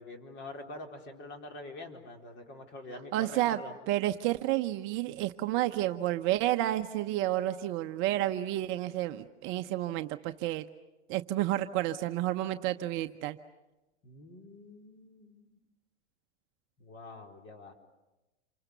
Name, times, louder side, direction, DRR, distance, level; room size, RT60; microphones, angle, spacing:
voice 1, 0.0-3.7 14.0-15.6 16.8-17.7, left 2 dB, 30° left, 3 dB, 4.2 m, -46 dB
voice 2, 3.1-3.6 3.9-10.6 11.1-13.4, right 15 dB, 35° right, 8 dB, 0.9 m, -30 dB
28.5 x 24.5 x 6.8 m, 1.0 s
hypercardioid pair, 125°, 35 cm